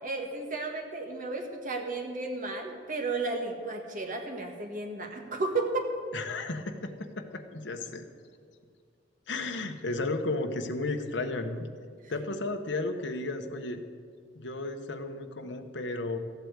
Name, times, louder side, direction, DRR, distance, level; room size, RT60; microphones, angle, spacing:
voice 1, 0.0-5.9 12.0-12.1, right 3 dB, 45° right, 3 dB, 1.5 m, -33 dB
voice 2, 6.1-8.1 9.3-11.7 12.1-13.8 14.3-16.2, left 2 dB, 75° left, 6 dB, 1.1 m, -33 dB
15.0 x 8.2 x 8.1 m, 2.1 s
head